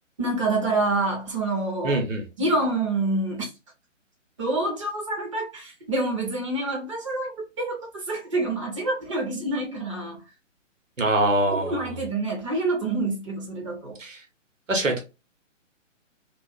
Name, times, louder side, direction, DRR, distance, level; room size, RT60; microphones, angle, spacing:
voice 1, 0.2-2.0 2.4-3.5 4.4-7.8 8.1-10.2 11.5-14.0, right 2 dB, 25° right, 0.6 m, -27 dB
voice 2, 1.8-2.2 11.0-11.9 14.0-14.2 14.7-15.0, right 2 dB, 80° right, 1.0 m, -23 dB
2.4 x 2.3 x 2.3 m
figure-of-eight pair, 135°, 38 cm